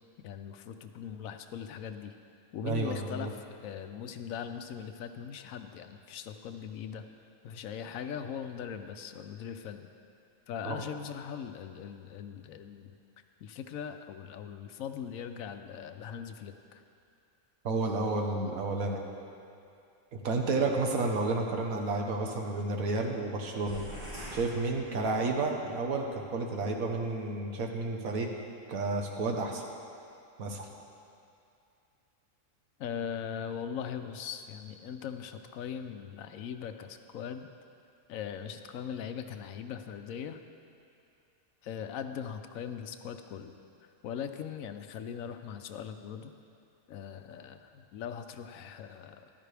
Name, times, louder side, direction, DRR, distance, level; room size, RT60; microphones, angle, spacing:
voice 1, 0.2-2.1 2.5-7.0 7.4-9.9 10.5-12.9 13.4-16.8 32.8-37.5 38.1-40.4 41.6-43.5 44.0-46.3 46.9-49.3, left 8 dB, 75° left, 8 dB, 1.0 m, -40 dB
voice 2, 2.6-3.3 10.6-10.8 17.6-19.0 20.1-23.8 24.3-28.3 28.7-29.6 30.4-30.7, right 3 dB, 85° right, 2 dB, 1.5 m, -31 dB
sound 1, 23.7-25.5, equal, 40° right, 3.1 m, -44 dB
14.0 x 11.5 x 3.4 m, 2.6 s
omnidirectional pair, 1.4 m